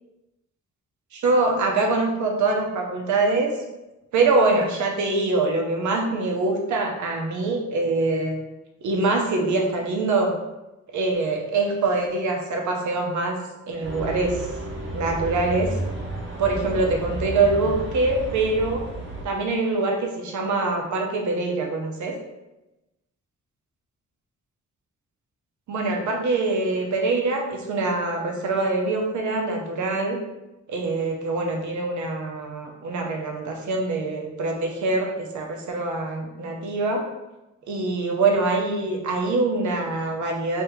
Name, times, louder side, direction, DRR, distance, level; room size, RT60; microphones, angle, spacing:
voice 1, 1.1-3.5 4.1-8.4 8.8-10.3 10.9-13.4 13.7-14.5 14.9-15.8 16.4-18.8 19.2-22.2 25.7-30.2 30.7-37.0 37.7-40.6, right 3 dB, 75° right, 2 dB, 0.8 m, -24 dB
sound 1, 13.8-19.3, right 1 dB, 40° right, 0.8 m, -32 dB
3.4 x 2.8 x 3.1 m, 0.99 s
wide cardioid pair, 140°, 30 cm